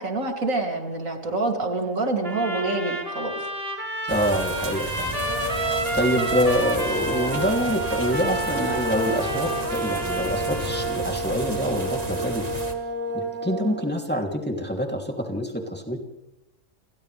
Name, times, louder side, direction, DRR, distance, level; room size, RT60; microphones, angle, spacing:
voice 1, 0.0-3.3, right 2 dB, 75° right, 2 dB, 3.4 m, -26 dB
Trumpet, 2.2-11.0, right 1 dB, 45° right, 3.5 m, -30 dB
voice 2, 4.1-5.2 5.9-12.5 13.1-16.0, equal, 5° left, 1 dB, 3.0 m, -26 dB
sound 1, 4.1-12.7, right 1 dB, 30° right, 2.2 m, -34 dB
sound 2, 5.1-13.8, right 2 dB, 50° left, 5.2 m, -30 dB
29.5 x 28.0 x 3.4 m, 0.87 s
omnidirectional pair, 1.4 m